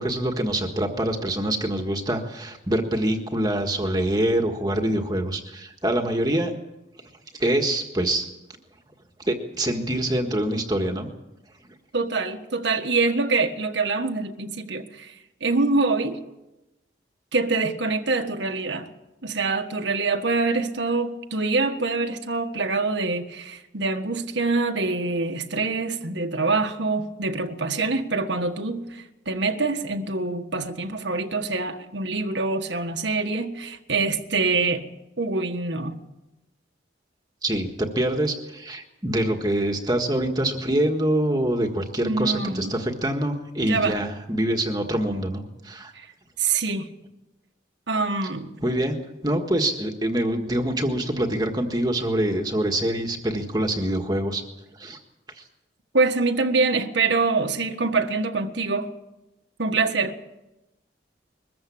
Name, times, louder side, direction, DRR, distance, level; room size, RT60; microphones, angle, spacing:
voice 1, 0.0-6.5 7.4-8.2 9.2-11.1 37.4-45.9 48.6-48.9 49.2-54.4 54.7-55.0 55.3-55.4, right 1 dB, 20° right, 1.6 m, -25 dB
voice 2, 11.9-15.1 15.4-16.2 17.3-18.9 19.2-34.9 35.2-36.0 42.0-42.7 43.6-44.0 45.9-46.1 46.4-46.9 47.9-48.5 55.9-58.9 59.6-60.1, right 3 dB, 80° right, 1.6 m, -25 dB
22.0 x 14.5 x 8.6 m
head